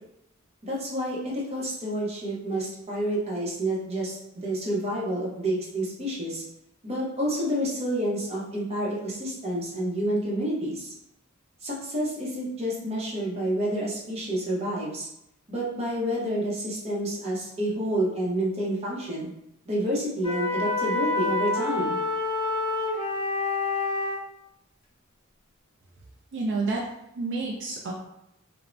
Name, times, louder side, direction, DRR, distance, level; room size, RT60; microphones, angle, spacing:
voice 1, 0.7-6.4 6.8-10.9 11.6-15.1 15.5-19.2 19.7-22.0, right 1 dB, 30° right, -5 dB, 0.7 m, -29 dB
sound 1, 20.2-24.2, left 3 dB, 30° left, 0.6 m, -27 dB
voice 2, 26.3-26.8 27.2-27.9, right 3 dB, 60° right, -2 dB, 0.4 m, -29 dB
2.5 x 2.0 x 3.1 m, 0.81 s
head